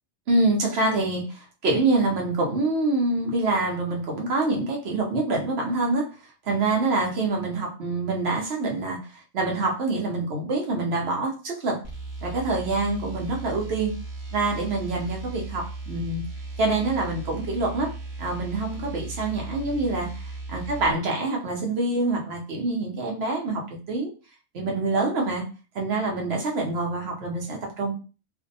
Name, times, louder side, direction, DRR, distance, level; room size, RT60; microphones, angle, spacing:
voice 1, 0.3-6.1 6.4-9.0 9.3-11.8 12.2-13.9 14.3-16.2 16.6-17.9 18.2-24.1 24.5-25.4 25.7-27.9, right 2 dB, 60° right, 1 dB, 0.9 m, -26 dB
sound 1, 11.8-20.9, right 3 dB, 30° right, 0.8 m, -36 dB
2.5 x 2.1 x 2.6 m, 0.35 s
omnidirectional pair, 1.3 m